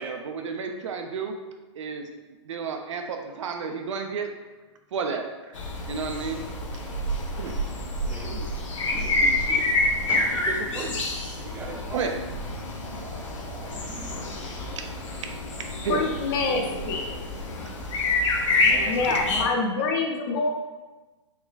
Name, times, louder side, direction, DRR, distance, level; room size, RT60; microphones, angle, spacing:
voice 1, 0.0-1.4 1.8-2.1 2.4-4.3 4.9-5.3 5.9-6.4 7.4-7.6 11.9-12.1 12.8-14.3 14.7-17.0, right 5 dB, 80° right, 4 dB, 0.5 m, -33 dB
sound 1, 5.5-19.4, left 2 dB, 80° left, 0.8 m, -28 dB
sound 2, 6.5-17.6, right 3 dB, 65° right, 0.9 m, -37 dB
voice 2, 8.0-8.5 8.9-11.0 11.4-12.1 13.8-13.9 18.0-18.1 18.6-19.6, right 3 dB, 10° right, 1 dB, 0.3 m, -38 dB
voice 3, 15.9-17.2 18.8-20.5, left 4 dB, 45° left, 2 dB, 0.6 m, -26 dB
3.7 x 3.1 x 2.3 m, 1.2 s
hypercardioid pair, 140°, 16 cm